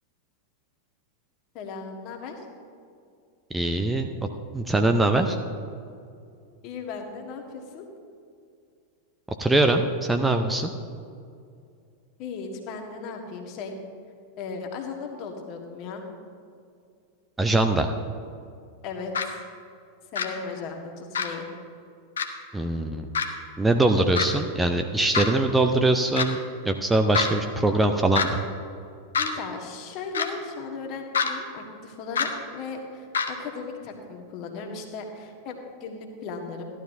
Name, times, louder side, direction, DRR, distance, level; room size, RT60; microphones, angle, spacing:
voice 1, 1.5-2.4 6.6-7.8 12.2-13.7 14.4-16.0 18.8-19.4 20.1-21.5 29.1-36.6, left 4 dB, 40° left, 3 dB, 1.4 m, -36 dB
voice 2, 3.5-4.1 4.5-5.4 9.4-10.7 17.4-17.9 22.5-23.1 23.6-26.4 26.6-28.4, right 2 dB, 10° right, 5 dB, 0.5 m, -22 dB
sound 1, 19.2-19.3 20.2-20.3 21.2-21.3 22.2-22.3 23.1-23.3 24.2-24.3 25.1-25.3 26.2-26.3 27.1-27.3 28.2-28.3 29.1-29.3 30.1-30.3 31.1-31.3 32.2-32.3 33.1-33.3, left 6 dB, 65° left, 0.8 m, -24 dB
14.5 x 11.5 x 2.7 m, 2.4 s
figure-of-eight pair, 90°, 0 cm